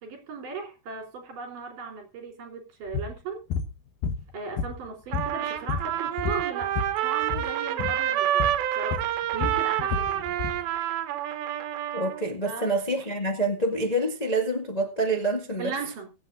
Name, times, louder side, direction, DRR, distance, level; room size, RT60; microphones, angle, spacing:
voice 1, 0.0-3.4 4.3-6.7 7.0-8.5 8.7-10.4 12.4-12.7 15.6-16.1, right 5 dB, 65° right, 5.0 m, -37 dB
sound 1, 2.9-3.1 3.5-3.7 4.0-4.9 5.1-7.0 7.2-7.5 7.8-8.0 8.4-8.6 8.9-10.6, left 6 dB, 70° left, 2.7 m, -30 dB
Trumpet, 5.1-12.2, right 12 dB, 85° right, 2.8 m, -28 dB
voice 2, 11.9-15.7, right 1 dB, 35° left, 0.6 m, -27 dB
22.5 x 8.6 x 2.5 m
omnidirectional pair, 4.2 m